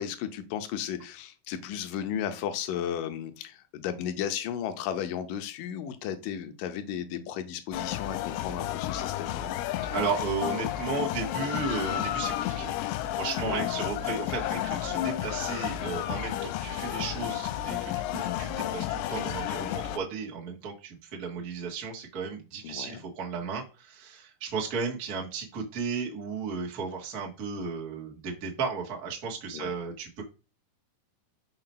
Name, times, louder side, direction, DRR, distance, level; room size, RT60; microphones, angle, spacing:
voice 1, 0.0-9.5 13.4-13.7 22.6-23.0 29.5-29.7, left 9 dB, 70° left, 9 dB, 2.2 m, -34 dB
sound 1, 7.7-20.0, left 13 dB, 90° left, 2.6 m, -32 dB
voice 2, 9.9-12.8 13.1-30.2, right 5 dB, 85° right, -1 dB, 0.8 m, -34 dB
5.9 x 4.9 x 5.5 m, 0.32 s
omnidirectional pair, 4.6 m